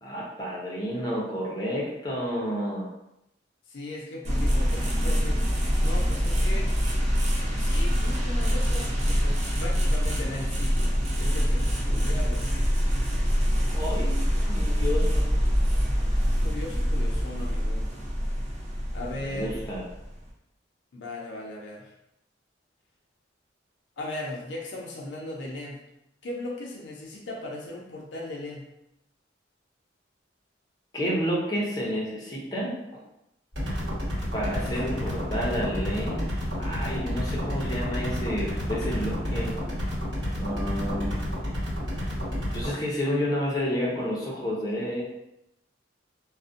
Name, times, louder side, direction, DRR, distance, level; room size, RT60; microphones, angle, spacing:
voice 1, 0.0-2.9 13.7-15.3 19.2-19.8 30.9-32.7 34.3-36.2 36.6-39.5 40.4-41.1 42.5-45.0, equal, 20° left, -4 dB, 0.6 m, -30 dB
voice 2, 3.7-5.4 5.8-6.7 7.5-12.5 16.4-17.9 18.9-19.7 20.9-21.9 24.0-25.8 26.2-28.6 34.5-35.6, left 2 dB, 70° left, -1 dB, 0.4 m, -38 dB
sound 1, 4.2-20.3, equal, 35° right, 0.5 m, -25 dB
sound 2, 33.5-42.7, equal, 65° right, 1.3 m, -30 dB
2.5 x 2.1 x 2.5 m, 0.85 s
head